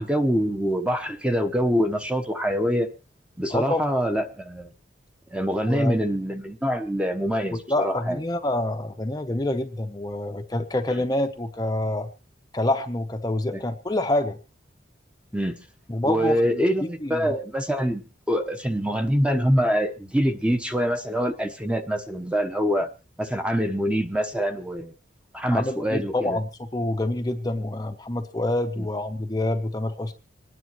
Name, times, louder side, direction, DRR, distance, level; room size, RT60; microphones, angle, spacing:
voice 1, 0.0-2.9 3.4-4.7 5.3-8.2 13.5-13.6 15.3-15.6 16.0-22.9 23.2-24.9 25.3-26.4 28.8-28.9, equal, 5° right, 6 dB, 0.9 m, -25 dB
voice 2, 3.5-3.8 5.6-5.9 7.5-12.1 12.5-14.4 15.9-17.3 25.5-30.1, left 1 dB, 20° left, 5 dB, 0.7 m, -27 dB
26.0 x 9.9 x 3.0 m, 0.30 s
head